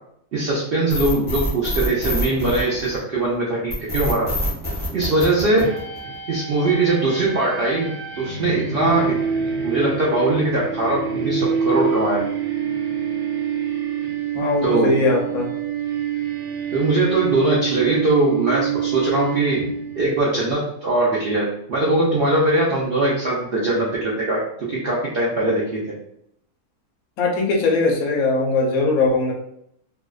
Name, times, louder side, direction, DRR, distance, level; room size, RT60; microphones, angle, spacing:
voice 1, 0.3-4.3 4.9-5.7 6.3-9.1 9.6-12.2 14.6-15.0 16.7-19.6 20.0-25.8, right 2 dB, 85° right, -5 dB, 0.5 m, -21 dB
sound 1, 0.9-3.2 3.7-6.1, equal, 20° left, 0.5 m, -25 dB
sound 2, 5.6-20.1, right 7 dB, 55° right, 0.9 m, -26 dB
voice 2, 14.3-15.5 27.2-29.3, left 3 dB, 70° left, 0 dB, 1.0 m, -20 dB
2.5 x 2.1 x 2.3 m, 0.74 s
omnidirectional pair, 1.6 m